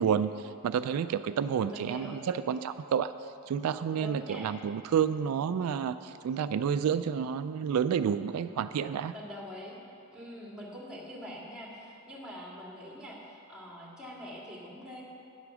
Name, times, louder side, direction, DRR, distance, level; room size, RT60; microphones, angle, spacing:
voice 1, 0.0-3.1 3.5-9.1, right 7 dB, 80° right, 12 dB, 0.3 m, -30 dB
voice 2, 1.7-2.2 4.0-4.6 9.1-9.8 10.1-15.0, equal, 5° right, -4 dB, 2.0 m, -44 dB
9.9 x 8.3 x 6.1 m, 2.7 s
head